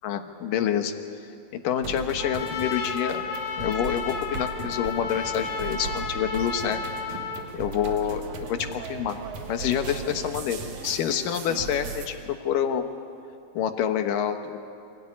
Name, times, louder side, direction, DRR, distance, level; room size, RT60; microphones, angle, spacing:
voice 1, 0.0-0.9 1.5-3.2 3.6-6.8 7.5-9.2 9.5-12.9 13.5-14.6, left 9 dB, 75° left, 7 dB, 2.8 m, -27 dB
sound 1, 1.8-12.1, right 5 dB, 60° right, 2.9 m, -37 dB
Trumpet, 2.2-7.5, left 5 dB, 60° left, 2.8 m, -33 dB
26.0 x 17.5 x 9.8 m, 2.6 s
omnidirectional pair, 3.9 m